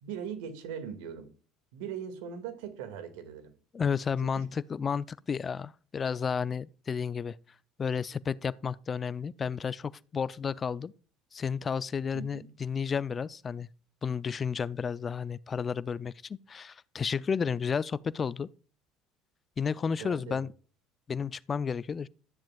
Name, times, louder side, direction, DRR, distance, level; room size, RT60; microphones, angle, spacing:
voice 1, 0.0-1.3 1.7-3.5 4.2-4.4 12.1-12.5 20.0-20.4, right 8 dB, 75° right, 1.9 m, -40 dB
voice 2, 3.7-7.4 7.8-10.9 11.3-13.7 14.0-18.5 19.6-20.5 21.1-22.1, left 6 dB, 35° left, 0.4 m, -32 dB
13.5 x 10.5 x 2.4 m
hypercardioid pair, 70°, 0 cm